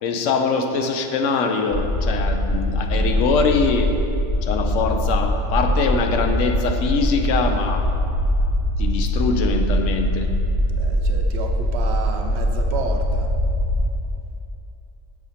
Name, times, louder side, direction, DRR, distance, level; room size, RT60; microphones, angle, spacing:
voice 1, 0.0-3.9 4.4-7.9 8.8-10.3, left 4 dB, 90° left, 5 dB, 0.9 m, -23 dB
sound 1, 1.7-13.9, equal, 35° left, 0.5 m, -22 dB
voice 2, 10.8-13.3, right 5 dB, 65° right, 3 dB, 0.8 m, -31 dB
7.2 x 5.0 x 4.2 m, 2.7 s
omnidirectional pair, 1.3 m